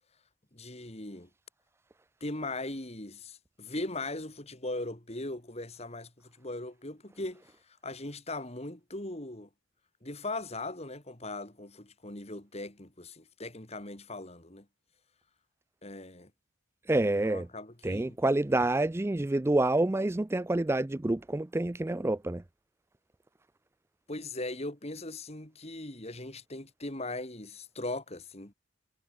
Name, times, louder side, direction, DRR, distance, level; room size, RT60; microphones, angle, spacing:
voice 1, 0.5-1.3 2.2-9.5 10.0-14.7 15.8-16.3 17.0-18.2 24.1-28.5, left 2 dB, 30° left, 2.6 m, -39 dB
voice 2, 16.9-17.5 17.8-22.4, right 2 dB, 10° right, 0.3 m, -28 dB
head